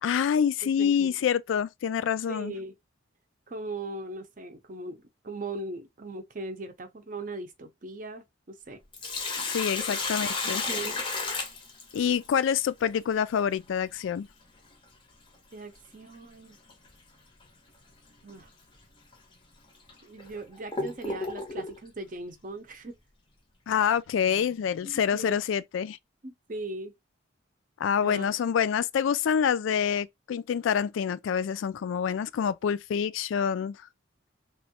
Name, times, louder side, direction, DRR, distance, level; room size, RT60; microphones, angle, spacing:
voice 1, 0.0-2.5 9.5-10.6 11.9-14.3 23.7-26.0 27.8-33.8, left 7 dB, 80° left, 0.3 m, -27 dB
voice 2, 0.6-1.2 2.3-2.7 3.5-8.8 10.5-11.0 15.5-16.6 18.2-18.5 20.0-23.0 24.8-25.4 26.2-26.9 28.0-28.3, right 2 dB, 45° right, 0.6 m, -39 dB
Sink (filling or washing), 8.7-12.3 14.7-14.8 16.7-16.9 17.4-17.5 18.3-18.4 19.1-19.2 19.9-21.8, left 3 dB, 25° left, 0.6 m, -32 dB
3.0 x 2.2 x 2.8 m
head